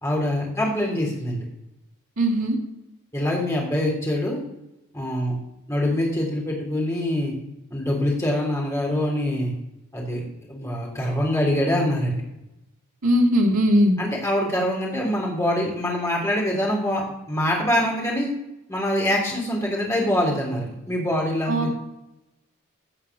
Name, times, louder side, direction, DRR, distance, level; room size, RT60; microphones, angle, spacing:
voice 1, 0.0-1.4 3.1-4.4 4.9-5.4 5.7-7.3 7.7-9.5 9.9-10.2 10.5-12.2 14.0-18.3 18.7-21.7, left 1 dB, 15° left, -2 dB, 3.2 m, -24 dB
voice 2, 2.2-2.6 13.0-14.0 21.5-21.7, equal, 80° right, -1 dB, 2.2 m, -19 dB
15.5 x 5.7 x 6.0 m, 0.91 s
head